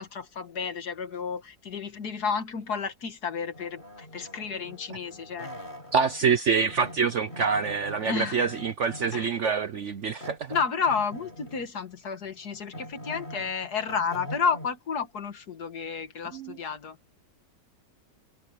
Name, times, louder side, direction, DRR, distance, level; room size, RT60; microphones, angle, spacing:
voice 1, 0.0-5.5 8.0-8.4 9.1-9.3 10.5-17.0, left 6 dB, 65° left, 2.1 m, -31 dB
sound 1, 3.5-6.4 6.7-9.4 10.2-11.8 12.2-14.7, left 1 dB, 25° left, 7.4 m, -43 dB
voice 2, 5.9-10.5 16.3-16.6, right 5 dB, 55° right, 0.9 m, -26 dB
omnidirectional pair, 1.9 m